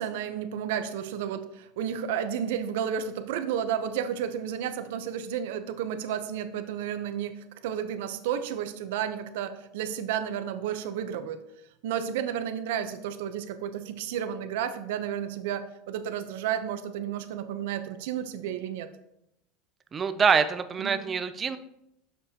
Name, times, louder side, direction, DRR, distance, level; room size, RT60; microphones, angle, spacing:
voice 1, 0.0-11.4 11.8-18.9 20.8-21.0, right 9 dB, 70° right, 10 dB, 0.7 m, -32 dB
voice 2, 19.9-21.6, right 6 dB, 15° right, 10 dB, 0.4 m, -25 dB
8.8 x 6.8 x 2.8 m, 0.81 s
supercardioid pair, 180°, 0 cm